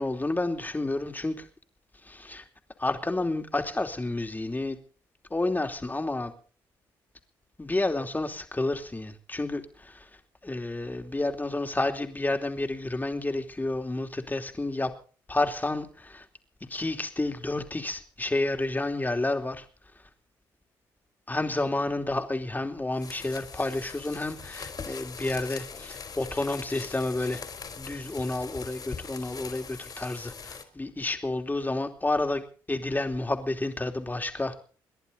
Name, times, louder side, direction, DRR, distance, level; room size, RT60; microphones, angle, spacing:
voice 1, 0.0-1.5 2.0-2.4 2.8-4.8 5.3-6.3 7.6-10.1 10.4-14.9 15.3-16.2 16.7-19.6 21.3-27.4 27.8-32.4 32.7-34.6, left 2 dB, 20° left, 5 dB, 2.9 m, -30 dB
sound 1, 22.9-30.6, left 5 dB, 50° left, 3.8 m, -41 dB
29.0 x 11.0 x 4.1 m, 0.40 s
supercardioid pair, 55°, 9 cm